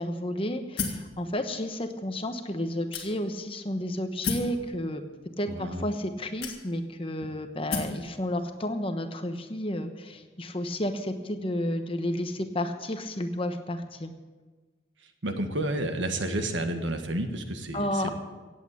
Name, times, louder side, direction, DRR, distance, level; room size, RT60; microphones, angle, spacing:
voice 1, 0.0-5.0 5.4-14.1 17.7-18.1, left 1 dB, 30° left, 7 dB, 1.0 m, -31 dB
sound 1, 0.8-1.1 1.9-2.0 2.9-3.4 4.2-4.6 5.5-5.6 6.4-6.9 7.7-8.0, left 4 dB, 55° left, 2.3 m, -32 dB
voice 2, 5.5-5.8 15.2-18.1, right 1 dB, 75° right, 6 dB, 1.6 m, -30 dB
16.5 x 8.5 x 8.4 m, 1.3 s
head